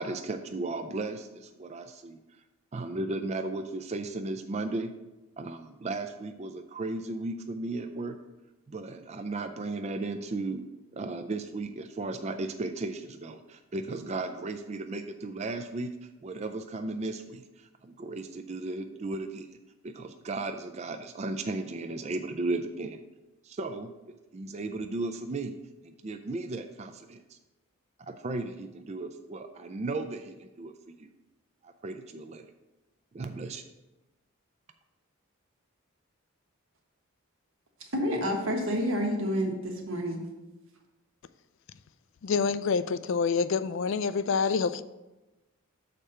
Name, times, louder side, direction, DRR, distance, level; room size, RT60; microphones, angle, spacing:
voice 1, 0.0-2.2 2.7-4.9 5.4-8.2 8.7-10.6 10.9-19.6 19.8-23.0 23.4-23.9 24.3-25.5 25.8-27.2 28.1-31.1 31.6-32.5 33.1-33.6, right 2 dB, 30° right, 0.3 m, -35 dB
voice 2, 37.8-40.2, equal, 65° right, 1.4 m, -29 dB
voice 3, 42.2-44.8, left 5 dB, 60° left, 0.3 m, -27 dB
6.6 x 4.3 x 6.6 m
head